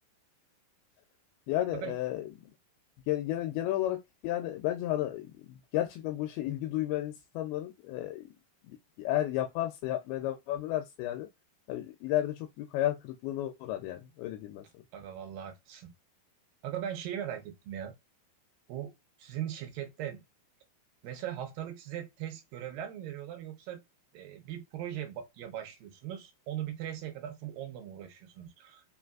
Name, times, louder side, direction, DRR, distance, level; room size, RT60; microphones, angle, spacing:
voice 1, 1.5-2.3 3.1-8.3 8.6-11.3 11.7-14.6, left 13 dB, 85° left, 2.5 m, -33 dB
voice 2, 14.9-15.9 16.6-17.9 18.7-18.9 19.2-20.2 21.0-23.8 24.1-28.8, right 10 dB, 75° right, 2.3 m, -39 dB
5.5 x 3.2 x 2.4 m
omnidirectional pair, 4.4 m